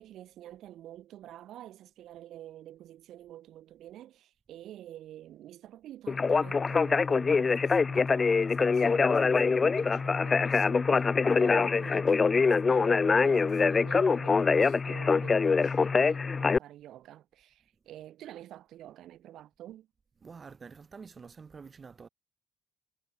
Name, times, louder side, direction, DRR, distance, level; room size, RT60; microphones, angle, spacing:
voice 1, 0.0-19.9, right 12 dB, 80° right, 3.6 m, -49 dB
Conversation, 6.1-16.6, left 4 dB, 35° left, 0.8 m, -24 dB
voice 2, 20.2-22.1, right 5 dB, 40° right, 3.4 m, -48 dB
cardioid pair, 90°, 0 cm